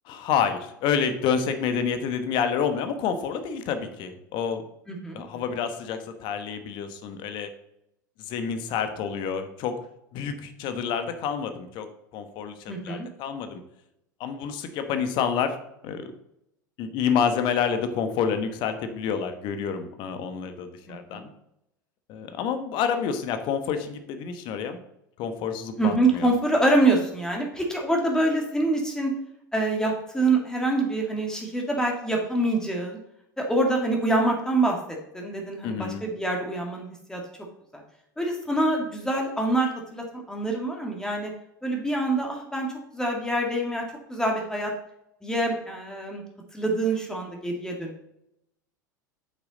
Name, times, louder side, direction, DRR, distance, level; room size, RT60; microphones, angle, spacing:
voice 1, 0.1-4.6 5.1-7.5 8.2-9.7 10.1-11.9 12.1-13.6 14.2-15.5 15.8-16.1 16.8-21.3 22.1-24.8 25.2-26.3 35.6-36.0, left 7 dB, 50° left, 8 dB, 1.1 m, -28 dB
voice 2, 4.9-5.2 12.7-13.1 20.9-21.3 25.8-29.1 29.5-33.0 33.4-34.8 35.1-37.2 38.2-41.3 41.6-42.7 42.9-43.8 44.1-44.7 45.2-46.2 46.5-48.0, right 2 dB, 5° left, 0 dB, 1.7 m, -25 dB
8.1 x 6.0 x 3.8 m, 0.80 s
hypercardioid pair, 85°, 10 cm